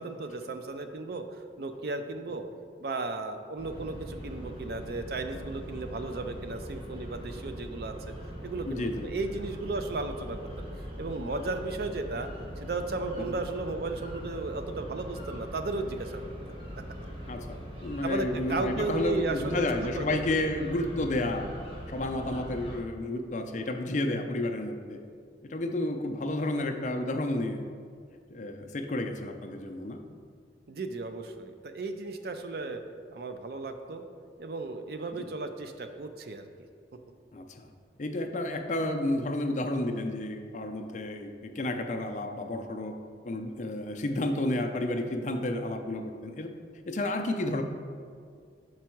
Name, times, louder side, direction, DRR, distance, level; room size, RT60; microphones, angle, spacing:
voice 1, 0.0-2.5 2.8-8.0 8.4-10.7 11.0-12.3 12.6-16.2 18.0-20.1 20.4-20.5 30.7-32.8 33.1-34.0 34.4-36.5, right 3 dB, 55° right, 7 dB, 0.4 m, -35 dB
sound 1, 3.6-22.8, equal, 30° right, 1.0 m, -41 dB
voice 2, 8.7-9.1 13.2-13.4 17.3-21.5 21.9-25.0 25.4-27.6 28.3-30.0 35.1-35.3 37.3-37.7 38.0-43.0 43.3-46.5 46.9-47.6, left 1 dB, 40° left, 4 dB, 0.4 m, -31 dB
6.1 x 4.6 x 4.4 m, 2.2 s
head